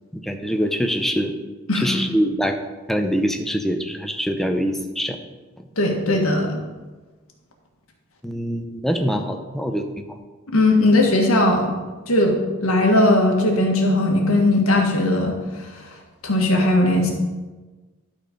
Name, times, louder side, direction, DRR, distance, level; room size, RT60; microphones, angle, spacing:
voice 1, 0.1-1.3 1.7-2.6 2.9-5.2 8.2-10.2, equal, ahead, 5 dB, 0.6 m, -24 dB
voice 2, 5.8-6.6 10.5-11.7 12.1-15.4 16.2-17.1, left 1 dB, 90° left, 1 dB, 1.6 m, -18 dB
11.5 x 4.4 x 5.2 m, 1.3 s
head